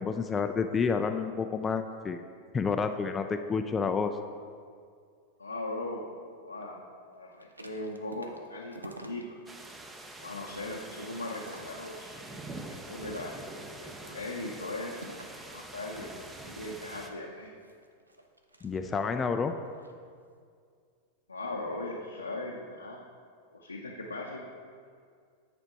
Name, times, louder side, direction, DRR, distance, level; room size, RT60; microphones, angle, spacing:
voice 1, 0.0-2.2 2.5-4.2 18.6-19.5, left 5 dB, 20° left, 6 dB, 0.3 m, -29 dB
voice 2, 5.4-6.0 6.4-6.8 7.2-9.4 10.2-12.2 12.6-13.5 13.8-16.1 16.4-17.5 21.3-23.0 23.5-24.5, left 2 dB, 80° left, -3 dB, 0.7 m, -39 dB
sound 1, 7.3-9.5 9.9-12.3 12.8-13.6 14.1-15.5 16.5-19.2 19.6-20.0, right 2 dB, 80° right, 0.6 m, -51 dB
sound 2, 9.5-17.1, right 2 dB, 10° right, 0.7 m, -45 dB
9.1 x 4.3 x 5.7 m, 2.2 s
figure-of-eight pair, 90°, 0 cm